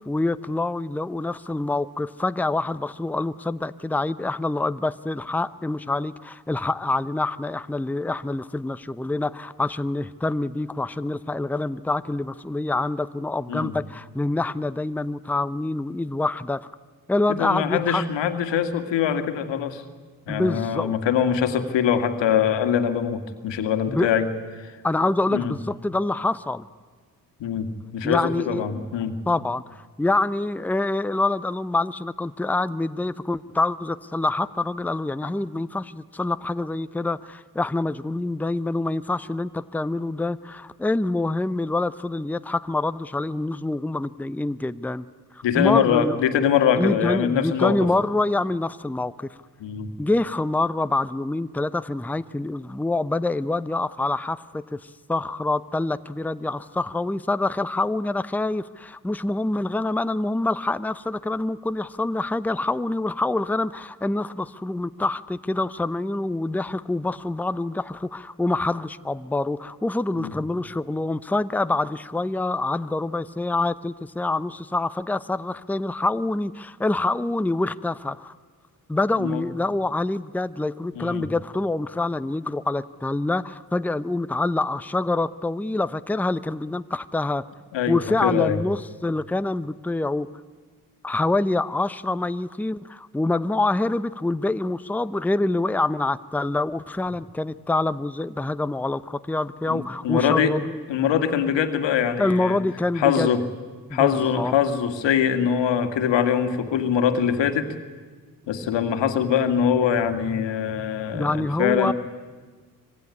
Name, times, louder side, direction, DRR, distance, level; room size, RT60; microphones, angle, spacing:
voice 1, 0.0-16.7 17.1-18.0 20.3-21.0 23.9-24.1 24.8-26.7 28.0-28.6 29.3-45.1 45.3-46.2 46.8-49.3 50.0-78.3 78.9-87.4 87.9-90.3 91.0-100.8 102.2-103.3 103.9-104.5 111.1-111.9, left 2 dB, 5° left, 14 dB, 0.8 m, -26 dB
voice 2, 17.3-19.8 20.3-24.3 24.6-24.8 25.3-25.5 27.4-29.2 35.2-35.3 45.4-47.8 49.6-49.9 70.2-70.3 79.2-79.4 80.9-81.2 87.7-88.6 99.7-100.5 100.9-102.6 103.0-103.4 103.9-107.7 108.5-111.9, left 8 dB, 65° left, 8 dB, 2.1 m, -23 dB
25.5 x 18.5 x 9.8 m, 1.5 s
hypercardioid pair, 45°, 47 cm